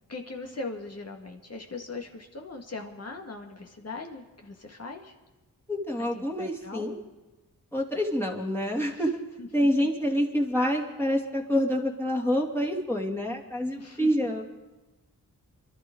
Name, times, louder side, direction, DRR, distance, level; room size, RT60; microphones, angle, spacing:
voice 1, 0.1-5.1 6.1-7.0 8.9-9.0 9.4-9.5 9.8-9.9 13.8-14.1, left 3 dB, 50° left, 2 dB, 2.0 m, -40 dB
voice 2, 5.7-7.0 7.7-9.2 9.5-14.4, equal, 5° left, -3 dB, 2.5 m, -27 dB
27.0 x 12.0 x 3.9 m, 1.1 s
cardioid pair, 60°, 33 cm